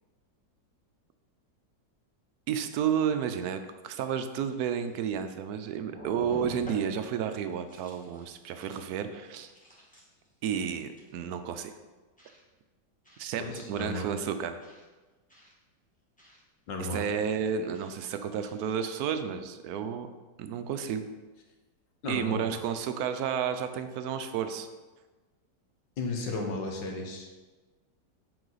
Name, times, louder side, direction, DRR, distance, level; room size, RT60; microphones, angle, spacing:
voice 1, 2.5-9.5 10.4-11.7 13.2-13.4 13.7-14.6 16.9-20.1 20.4-21.0 22.1-24.7, right 8 dB, 70° right, 9 dB, 0.9 m, -31 dB
sound 1, 4.5-5.5 5.8-7.1 7.5-8.3 8.6-8.9 9.2-10.3 10.8-11.1 12.2-12.4 13.1-13.3 13.7-14.0 14.6-14.8 15.3-15.5 16.2-16.4 16.9-17.1 17.7-18.0 18.4-18.5, equal, 5° left, 1.1 m, -46 dB
voice 2, 13.4-14.1 16.7-17.1 22.0-22.4 26.0-27.3, left 2 dB, 80° left, 2 dB, 1.7 m, -34 dB
7.9 x 4.7 x 3.9 m, 1.2 s
omnidirectional pair, 1.9 m